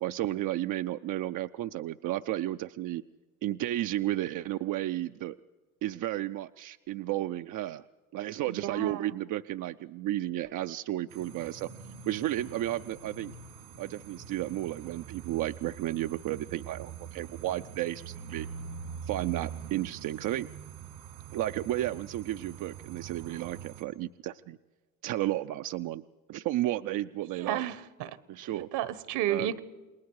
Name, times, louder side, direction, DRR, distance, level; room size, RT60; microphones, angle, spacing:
voice 1, 0.0-3.0 3.4-5.4 5.8-7.9 8.1-11.7 12.1-13.3 13.8-18.5 19.0-20.5 21.3-24.6 25.0-26.0 26.3-27.6 28.3-28.7 29.3-29.5, right 14 dB, 50° right, 9 dB, 0.5 m, -33 dB
voice 2, 8.5-9.1 27.3-28.2 28.6-29.6, right 11 dB, 65° right, 17 dB, 1.2 m, -32 dB
sound 1, 11.1-23.8, right 7 dB, 80° right, 2.6 m, -44 dB
28.5 x 20.0 x 4.8 m, 1.3 s
hypercardioid pair, 75°, 43 cm